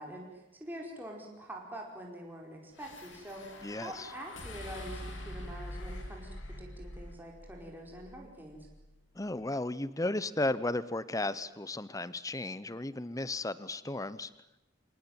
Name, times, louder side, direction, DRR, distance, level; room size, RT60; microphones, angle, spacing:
voice 1, 0.0-3.5 3.7-8.7, right 1 dB, 10° right, -1 dB, 4.8 m, -45 dB
sound 1, 2.7-9.1, left 1 dB, 70° left, 4.0 m, -45 dB
voice 2, 3.6-4.1 9.1-14.3, left 2 dB, 15° left, 16 dB, 0.8 m, -34 dB
26.0 x 19.5 x 9.2 m, 0.97 s
head